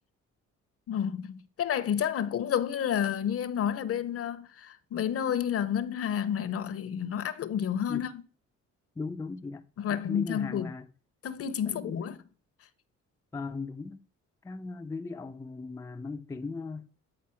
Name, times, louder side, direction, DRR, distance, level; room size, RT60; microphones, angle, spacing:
voice 1, 0.9-8.2 9.8-10.7 11.2-12.2, left 9 dB, 50° left, 0.6 m, -30 dB
voice 2, 9.0-9.6 9.9-10.9 11.6-12.0 13.3-14.0 14.4-16.9, left 4 dB, 10° left, 0.3 m, -38 dB
8.7 x 4.1 x 4.4 m
cardioid pair, 90°, 30 cm